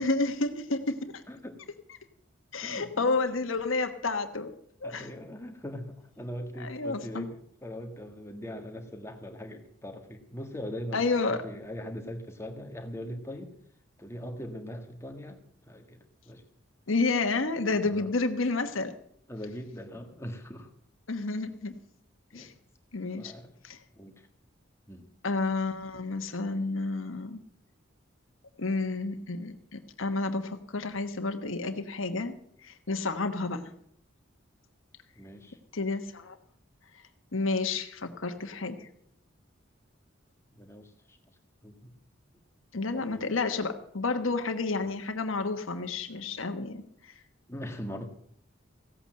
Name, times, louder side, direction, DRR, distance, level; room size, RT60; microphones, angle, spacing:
voice 1, 0.0-1.2 2.5-4.5 4.8-5.1 6.6-7.3 10.9-11.4 16.9-18.9 21.1-21.7 22.3-22.5 22.9-23.3 23.6-23.8 25.2-27.4 28.6-32.3 32.6-33.6 35.7-36.4 37.3-38.9 42.7-47.1, left 3 dB, 80° left, 6 dB, 1.2 m, -30 dB
voice 2, 1.3-1.6 2.6-3.2 4.8-13.5 14.0-15.4 15.7-16.0 16.2-16.4 17.9-18.1 19.3-20.7 22.3-22.5 23.2-23.5 24.0-24.3 24.9-25.1 35.2-35.6 40.5-41.2 41.6-41.9 42.7-43.2 44.8-44.9 47.5-48.1, equal, 15° left, 4 dB, 1.6 m, -41 dB
16.0 x 8.5 x 7.7 m, 0.66 s
head